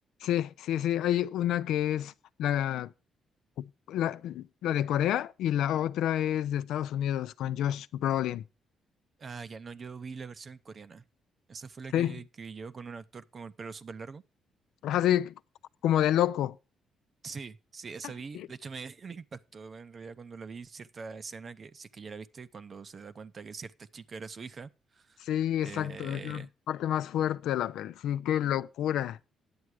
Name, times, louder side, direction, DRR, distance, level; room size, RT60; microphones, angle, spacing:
voice 1, 0.2-2.1 2.4-2.9 3.6-8.4 11.9-12.2 14.8-15.3 15.8-16.6 18.3-18.5 25.2-29.2, left 11 dB, 85° left, 0.4 m, -29 dB
voice 2, 9.2-11.0 11.5-14.2 17.2-25.3 25.6-26.5, right 5 dB, 40° right, 0.6 m, -43 dB
9.7 x 7.7 x 4.8 m
cardioid pair, 90°, 0 cm